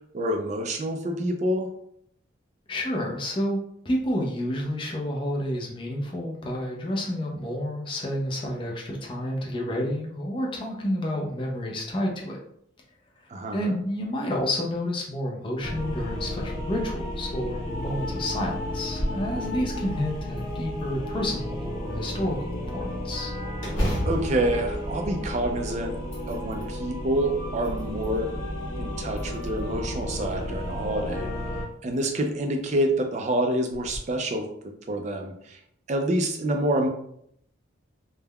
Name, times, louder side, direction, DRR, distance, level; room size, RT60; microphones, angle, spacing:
voice 1, 0.1-1.7 13.3-13.8 24.0-26.0 26.3-28.3 28.8-31.3 31.8-34.5 34.9-35.6 35.9-36.9, right 1 dB, 35° right, 4 dB, 0.3 m, -27 dB
voice 2, 2.7-3.6 3.8-12.4 13.2-23.3, left 1 dB, 25° left, -1 dB, 0.4 m, -30 dB
sound 1, 15.6-31.6, left 1 dB, 55° left, 1.3 m, -33 dB
sound 2, 18.8-19.3 19.7-19.8 20.4-21.2 23.6-25.6 26.0-26.7 27.3-28.2 29.1-29.8 31.2-31.3 31.9-32.1 32.6-32.7 33.7-34.0, equal, 70° left, 1.0 m, -32 dB
3.4 x 2.1 x 2.2 m, 0.71 s
head